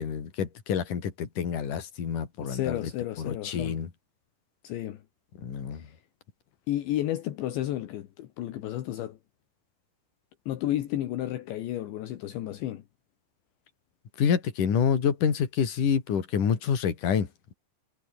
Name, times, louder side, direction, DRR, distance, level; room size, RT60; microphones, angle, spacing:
voice 1, 0.0-2.9 3.2-3.9 5.4-5.9 14.2-17.5, left 7 dB, 45° left, 4.4 m, -27 dB
voice 2, 2.4-3.8 4.6-5.0 5.7-5.9 6.7-9.2 10.5-12.8, left 13 dB, 70° left, 3.7 m, -32 dB
omnidirectional pair, 5.5 m